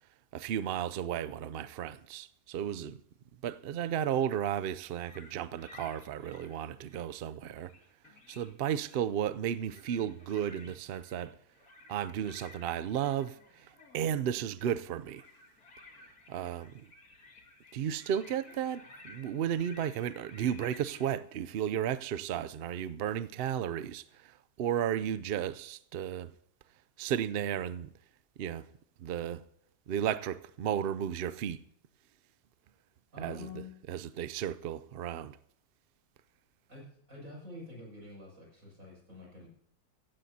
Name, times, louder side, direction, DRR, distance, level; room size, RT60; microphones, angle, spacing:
voice 1, 0.3-3.0 3.4-7.7 8.3-11.3 11.9-15.2 16.3-16.9 17.7-26.3 27.0-27.9 28.4-28.7 29.0-29.4 29.9-31.6 33.2-33.5 33.9-35.4, right 9 dB, 75° right, 0.5 m, -34 dB
sound 1, 5.0-7.1 7.5-9.1 9.5-21.2, left 3 dB, 70° left, 2.4 m, -55 dB
voice 2, 33.1-33.7 36.7-39.5, left 2 dB, 55° right, 7.2 m, -47 dB
15.5 x 15.5 x 2.8 m
omnidirectional pair, 1.7 m